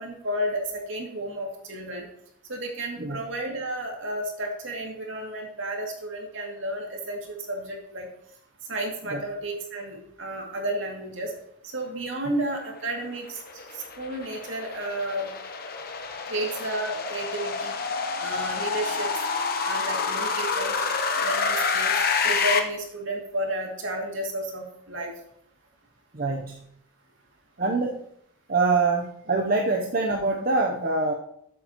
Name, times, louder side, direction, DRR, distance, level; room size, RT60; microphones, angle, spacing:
voice 1, 0.0-2.1 2.5-8.1 8.7-11.3 11.7-13.4 13.7-15.3 16.3-17.8 18.2-19.1 19.6-20.7 21.2-21.9 22.2-25.1, right 1 dB, 65° right, 0 dB, 2.4 m, -32 dB
sound 1, 13.0-22.6, left 5 dB, 45° left, 0.9 m, -28 dB
voice 2, 26.1-26.7 27.6-28.1 28.5-31.1, right 3 dB, 45° right, 2 dB, 0.8 m, -25 dB
13.0 x 8.4 x 3.0 m, 0.73 s
head